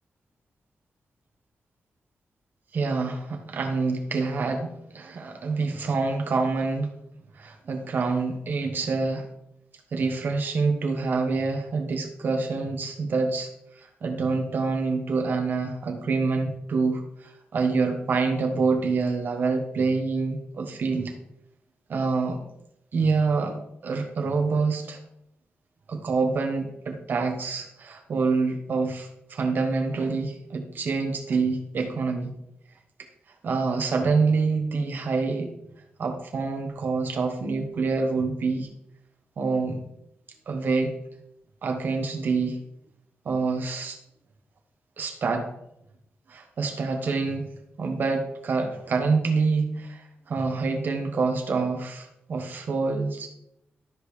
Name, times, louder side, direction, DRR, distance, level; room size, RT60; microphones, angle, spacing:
voice 1, 2.7-6.9 7.3-9.3 9.9-13.5 13.8-21.1 21.9-22.4 22.9-23.6 23.8-25.0 25.9-32.3 33.4-35.5 36.0-38.7 39.4-39.8 40.5-40.9 41.6-42.6 43.2-44.0 45.0-45.5 46.3-47.5 47.8-53.3, right 4 dB, 55° right, 4 dB, 1.3 m, -26 dB
12.5 x 5.2 x 3.3 m, 0.78 s
wide cardioid pair, 160°, 4 cm